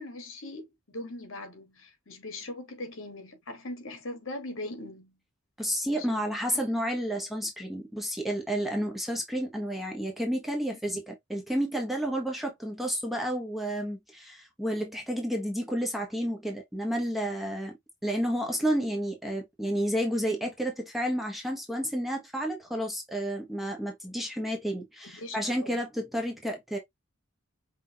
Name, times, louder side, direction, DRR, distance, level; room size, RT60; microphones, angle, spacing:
voice 1, 0.0-5.2 5.9-6.2 6.5-6.7 10.7-10.8 25.1-25.8, left 2 dB, 70° left, 1.3 m, -40 dB
voice 2, 5.6-17.8 18.0-26.8, equal, ahead, 1.0 m, -31 dB
5.7 x 2.6 x 2.7 m
head